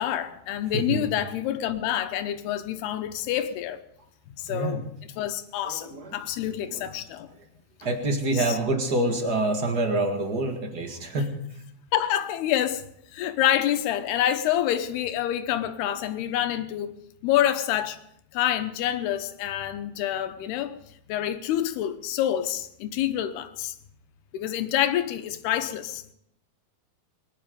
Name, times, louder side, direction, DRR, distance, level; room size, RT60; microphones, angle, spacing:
voice 1, 0.0-3.8 4.4-4.8 5.2-7.3 8.3-8.6 11.1-11.2 11.9-12.8 13.1-17.0 17.2-18.0 18.3-20.7 21.1-23.7 24.3-26.0, left 11 dB, 90° left, 3.0 m, -27 dB
voice 2, 0.7-1.1 4.5-4.8 5.6-6.1 6.5-6.8 7.8-11.4, right 2 dB, 40° right, 1.5 m, -27 dB
22.5 x 11.0 x 5.2 m
omnidirectional pair, 4.5 m